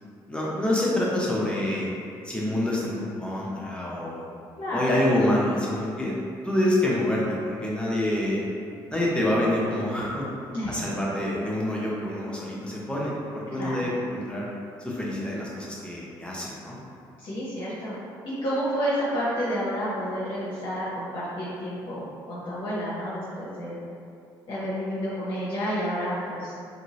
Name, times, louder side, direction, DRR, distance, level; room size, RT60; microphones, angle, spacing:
voice 1, 0.3-1.9 2.2-4.2 4.7-6.2 6.4-8.4 8.9-10.3 10.7-14.5 14.8-16.8, left 1 dB, 10° left, -5 dB, 0.8 m, -26 dB
voice 2, 4.6-5.0 10.5-10.8 13.5-13.8 17.2-18.0 18.2-23.8 24.5-26.6, equal, 45° left, -10 dB, 0.8 m, -30 dB
3.0 x 2.8 x 2.8 m, 2.4 s
figure-of-eight pair, 45°, 12 cm